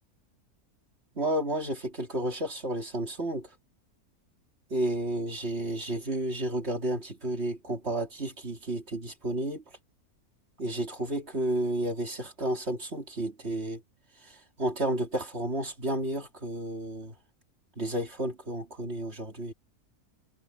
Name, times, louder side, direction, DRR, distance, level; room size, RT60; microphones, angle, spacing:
voice 1, 1.1-3.5 4.7-9.6 10.6-13.8 14.2-17.1 17.8-19.5, right 1 dB, 45° right, 3.0 m, -31 dB
omnidirectional pair, 1.6 m